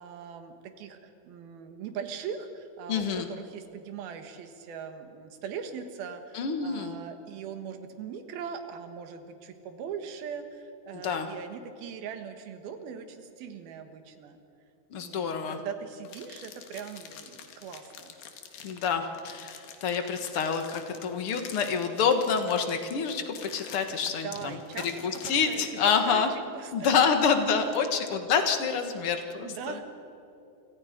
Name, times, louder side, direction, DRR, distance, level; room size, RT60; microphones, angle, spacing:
voice 1, 0.0-14.4 15.0-18.1 24.0-27.1 27.8-28.0 29.4-29.8, right 7 dB, 90° right, 7 dB, 3.4 m, -40 dB
voice 2, 2.9-3.3 6.3-7.0 10.9-11.3 14.9-15.6 18.6-24.6 24.8-26.3 26.7-29.8, left 6 dB, 50° left, 6 dB, 1.8 m, -27 dB
sound 1, 16.0-26.1, left 7 dB, 80° left, 3.5 m, -47 dB
29.5 x 25.5 x 5.2 m, 2.7 s
omnidirectional pair, 4.2 m